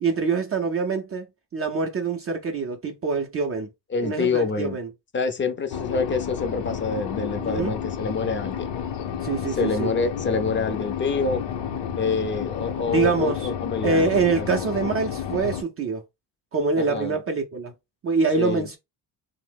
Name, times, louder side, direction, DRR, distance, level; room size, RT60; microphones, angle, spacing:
voice 1, 0.0-1.3 1.5-3.7 4.0-4.9 7.4-7.7 9.2-9.9 12.9-13.5 13.8-16.0 16.5-17.7 18.0-18.8, right 4 dB, 35° right, 0.4 m, -25 dB
voice 2, 3.9-4.8 5.1-8.7 9.5-11.4 12.0-14.6 16.7-17.2 18.4-18.6, left 4 dB, 25° left, 0.4 m, -27 dB
sound 1, 5.7-15.6, left 8 dB, 70° left, 0.7 m, -31 dB
2.8 x 2.0 x 3.3 m
cardioid pair, 115°, 44 cm